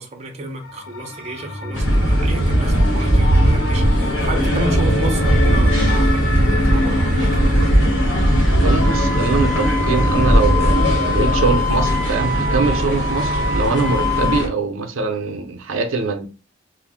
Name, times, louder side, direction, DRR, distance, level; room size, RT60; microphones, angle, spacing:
voice 1, 0.0-7.8, right 2 dB, 35° right, 0.5 m, -31 dB
sound 1, 0.6-12.6, left 1 dB, 90° left, 0.9 m, -26 dB
sound 2, 1.7-14.5, equal, 65° left, 1.2 m, -18 dB
voice 2, 8.6-16.3, right 4 dB, 85° right, 0.5 m, -23 dB
Wind instrument woodwind instrument, 8.8-14.4, left 4 dB, 45° left, 1.1 m, -25 dB
2.5 x 2.0 x 3.4 m
head